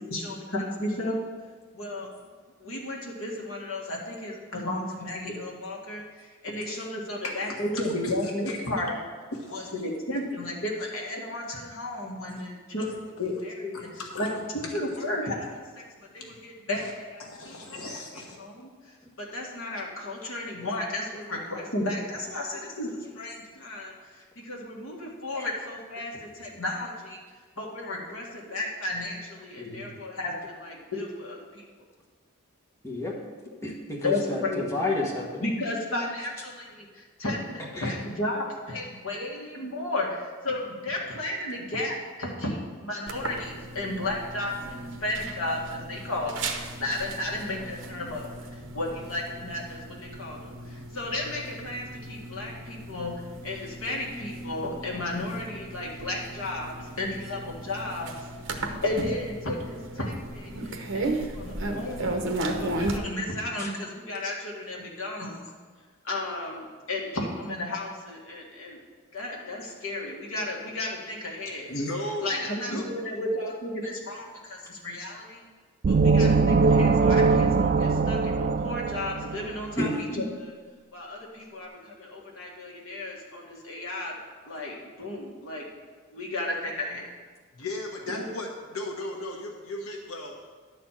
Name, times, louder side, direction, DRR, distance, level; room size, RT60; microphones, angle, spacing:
voice 1, 0.1-1.2 1.7-2.1 2.6-6.0 6.4-9.0 9.5-13.9 14.2-14.3 14.7-15.5 15.8-15.9 16.1-17.6 17.9-18.7 19.2-23.9 24.4-27.2 27.6-31.6 34.0-34.7 35.4-46.5 46.8-48.3 48.7-53.1 53.4-58.1 58.8-62.2 62.6-65.4 66.0-68.8 69.1-71.7 72.2-75.4 75.9-80.5 80.9-84.1 84.5-85.6 86.1-87.1 88.1-88.3, left 1 dB, 65° left, -2 dB, 2.0 m, -33 dB
voice 2, 7.2-7.6 8.0-8.6 9.3-9.7 13.7-14.3 16.3-16.4 16.8-16.9 17.2-18.4 71.7-72.8 87.5-90.3, left 1 dB, 85° left, 1 dB, 1.2 m, -36 dB
voice 3, 29.6-30.0 32.8-33.1 33.6-35.4 37.7-37.9 63.6-63.7 79.8-80.0, left 1 dB, 15° left, -3 dB, 1.3 m, -31 dB
sound 1, 43.1-63.0, right 2 dB, 60° right, 1.0 m, -36 dB
sound 2, 75.8-79.6, right 4 dB, 40° right, 0.3 m, -21 dB
11.0 x 4.4 x 7.4 m, 1.5 s
head